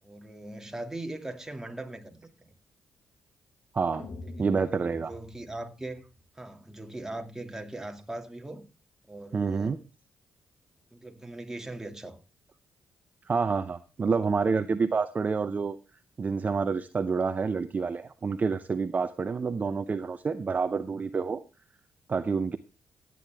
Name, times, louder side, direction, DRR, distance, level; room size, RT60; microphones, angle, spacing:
voice 1, 0.0-2.5 4.7-6.0 6.3-8.7 9.1-9.8 10.9-12.2, right 2 dB, 10° right, 2.3 m, -40 dB
voice 2, 3.7-4.1 4.4-5.1 9.3-9.8 13.2-15.8 16.2-21.4 22.1-22.6, right 5 dB, 40° right, 0.8 m, -28 dB
sound 1, 3.9-6.2, left 2 dB, 60° left, 1.6 m, -45 dB
14.0 x 9.4 x 3.5 m
supercardioid pair, 55°, 4 cm